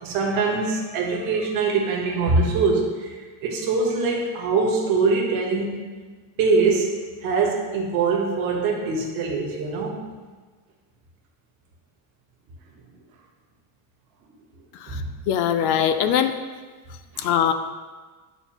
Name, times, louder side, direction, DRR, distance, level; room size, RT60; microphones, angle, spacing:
voice 1, 0.0-5.8 6.4-10.1 14.9-15.0 15.6-15.7 17.1-17.3, right 4 dB, 55° right, 0 dB, 1.3 m, -23 dB
voice 2, 14.8-16.3 17.2-17.5, left 9 dB, 65° left, 9 dB, 0.5 m, -22 dB
9.1 x 4.0 x 2.9 m, 1.4 s
cardioid pair, 165°, 42 cm